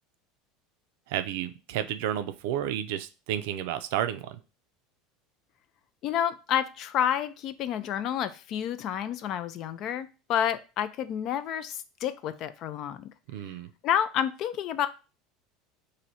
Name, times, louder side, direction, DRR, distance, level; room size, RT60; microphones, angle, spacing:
voice 1, 1.1-4.4 13.3-13.7, right 11 dB, 75° right, 10 dB, 0.4 m, -31 dB
voice 2, 6.0-13.1 13.8-14.9, left 9 dB, 55° left, 12 dB, 0.4 m, -29 dB
3.1 x 2.6 x 4.0 m, 0.32 s
supercardioid pair, 100°, 0 cm